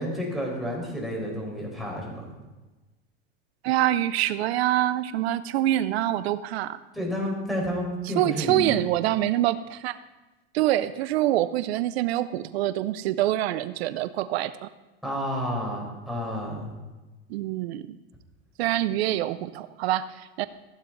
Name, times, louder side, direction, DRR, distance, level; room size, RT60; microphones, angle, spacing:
voice 1, 0.0-2.3 6.9-8.8 15.0-16.7, equal, ahead, -3 dB, 4.5 m, -30 dB
voice 2, 3.6-6.8 8.2-10.0 10.5-14.7 17.3-17.9 18.6-20.5, right 14 dB, 80° right, 14 dB, 0.6 m, -25 dB
15.0 x 8.8 x 3.9 m, 1.2 s
supercardioid pair, 110°, 31 cm